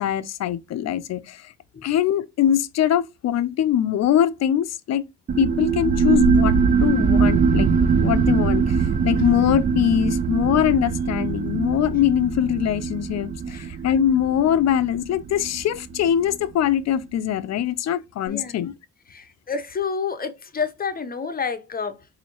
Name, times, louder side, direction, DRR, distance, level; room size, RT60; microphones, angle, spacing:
voice 1, 0.0-1.5 1.8-5.0 5.4-7.7 8.0-18.7, left 10 dB, 60° left, 0.5 m, -22 dB
sound 1, 5.3-16.4, right 5 dB, 25° right, 0.3 m, -22 dB
voice 2, 19.1-22.1, left 5 dB, 30° left, 0.8 m, -29 dB
4.0 x 2.8 x 2.9 m
cardioid pair, 90°, 30 cm